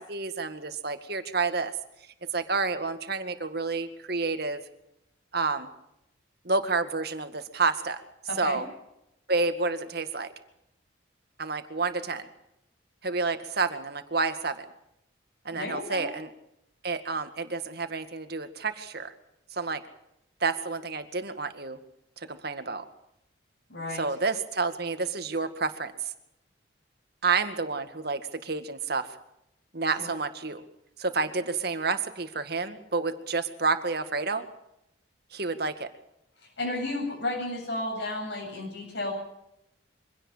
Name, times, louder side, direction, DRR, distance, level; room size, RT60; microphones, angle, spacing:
voice 1, 0.0-1.7 2.3-4.6 5.3-5.7 6.4-8.0 8.4-8.6 9.3-10.3 11.4-12.2 13.0-14.7 15.5-16.3 16.8-19.1 19.5-19.8 20.4-21.8 22.2-22.8 23.9-26.1 27.2-29.1 29.7-30.6 31.0-34.5 35.3-35.9, right 4 dB, 55° right, 9 dB, 2.0 m, -29 dB
voice 2, 8.3-8.6 15.5-16.1 23.7-24.1 30.0-30.1 36.6-39.1, left 2 dB, 70° left, -3 dB, 7.9 m, -32 dB
24.0 x 17.0 x 7.4 m, 0.82 s
head